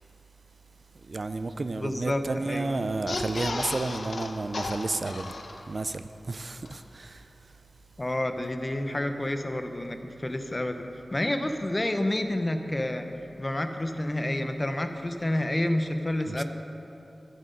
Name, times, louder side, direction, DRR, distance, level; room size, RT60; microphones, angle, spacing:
voice 1, 1.0-5.4 5.7-7.6 16.3-16.4, right 3 dB, 50° right, 0.3 m, -32 dB
voice 2, 1.8-2.8 8.0-13.1 13.4-16.4, left 1 dB, 25° left, 0.7 m, -29 dB
sound 1, 2.9-5.9 6.3-6.4 6.6-6.7, left 2 dB, 65° left, 0.7 m, -35 dB
12.0 x 7.5 x 5.2 m
wide cardioid pair, 95°, 0 cm